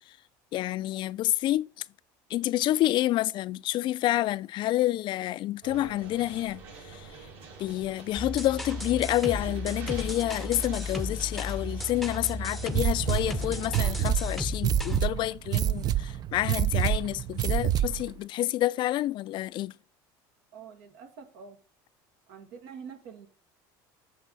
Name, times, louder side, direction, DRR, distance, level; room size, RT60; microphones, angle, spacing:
voice 1, 0.5-1.7 2.3-6.6 6.9-7.1 7.6-19.7, left 15 dB, 50° left, 0.4 m, -28 dB
sound 1, 5.6-14.0, right 4 dB, 65° right, 4.8 m, -45 dB
sound 2, 8.2-15.0, left 1 dB, ahead, 0.7 m, -34 dB
sound 3, 12.7-18.1, right 12 dB, 40° right, 0.4 m, -28 dB
voice 2, 20.5-21.6 22.3-23.3, right 6 dB, 80° right, 1.9 m, -46 dB
8.4 x 6.1 x 4.0 m
supercardioid pair, 120°, 11 cm